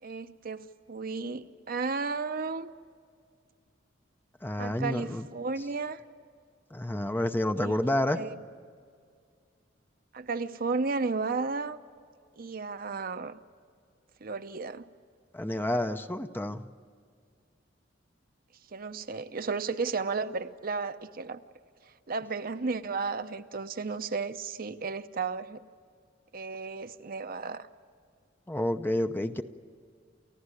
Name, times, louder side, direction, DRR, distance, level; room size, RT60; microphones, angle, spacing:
voice 1, 0.0-2.7 4.6-6.0 7.6-8.4 10.1-11.8 12.4-13.4 14.2-14.9 18.7-21.4 21.8-25.6 26.3-27.7, right 4 dB, 50° right, 0.7 m, -34 dB
voice 2, 4.4-5.2 6.7-8.2 15.3-16.7 28.5-29.4, left 1 dB, 10° left, 0.7 m, -29 dB
29.5 x 15.0 x 9.8 m
head